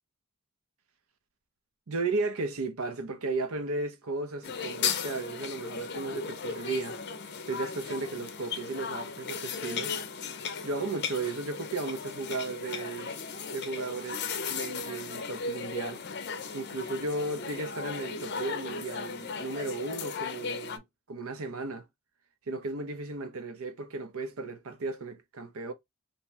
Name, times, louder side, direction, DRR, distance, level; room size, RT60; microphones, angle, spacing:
voice 1, 1.9-7.0 7.5-9.9 10.6-13.1 13.5-16.0 16.5-21.8 22.5-25.7, right 3 dB, 75° right, 0.7 m, -35 dB
sound 1, 4.4-20.8, left 5 dB, 50° left, 0.5 m, -36 dB
2.8 x 2.8 x 3.2 m
head